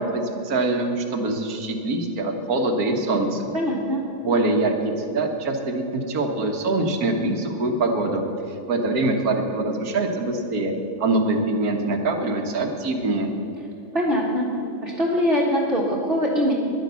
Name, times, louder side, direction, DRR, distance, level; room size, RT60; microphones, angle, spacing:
voice 1, 0.0-3.4 4.2-8.2 8.7-10.7 11.0-13.3, right 2 dB, 80° right, 4 dB, 1.8 m, -24 dB
voice 2, 3.5-4.0 13.9-14.5 14.8-16.5, equal, 40° right, -6 dB, 1.9 m, -22 dB
11.0 x 10.0 x 6.9 m, 2.8 s
omnidirectional pair, 1.5 m